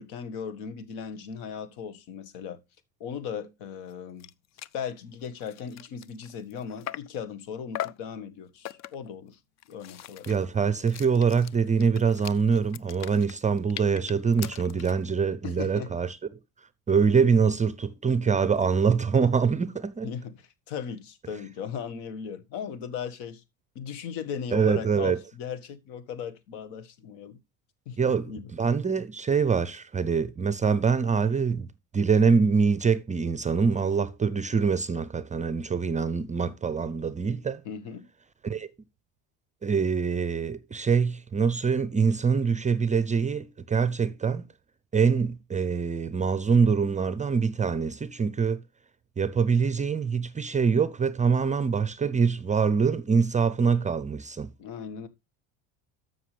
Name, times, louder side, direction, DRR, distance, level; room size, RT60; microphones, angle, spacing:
voice 1, 0.0-2.6 3.0-4.3 4.7-9.4 9.7-10.3 15.4-15.9 20.0-23.4 23.8-27.4 27.9-28.5 37.7-38.1 54.6-55.1, left 7 dB, 65° left, 1.7 m, -37 dB
sound 1, 3.9-4.0 4.2-4.3 4.6-4.8 5.2-7.2 7.7-8.1 8.6-9.1 9.6-15.0, left 12 dB, 40° left, 0.5 m, -40 dB
voice 2, 10.3-16.2 16.9-20.1 24.5-25.2 28.0-31.7 31.9-37.6 38.4-38.7 39.6-44.5 44.9-48.6 49.2-54.5, right 5 dB, 15° right, 0.6 m, -24 dB
13.0 x 6.0 x 3.3 m
supercardioid pair, 110°, 43 cm